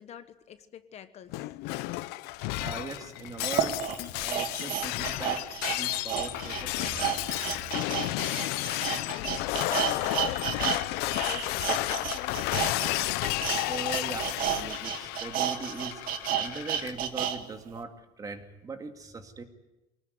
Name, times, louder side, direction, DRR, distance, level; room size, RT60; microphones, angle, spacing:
voice 1, 0.0-1.5 9.1-13.0, left 9 dB, 40° left, 10 dB, 1.2 m, -46 dB
Shatter, 1.3-16.9, left 18 dB, 85° left, 0.8 m, -32 dB
voice 2, 2.5-7.4 13.7-16.0 16.4-19.4, right 4 dB, 20° right, 6 dB, 2.3 m, -40 dB
sound 1, 2.7-2.8 3.4-10.8 11.1-17.4 17.7-17.8, right 10 dB, 60° right, 2.1 m, -32 dB
24.5 x 19.5 x 9.5 m, 0.96 s
cardioid pair, 150°, 16 cm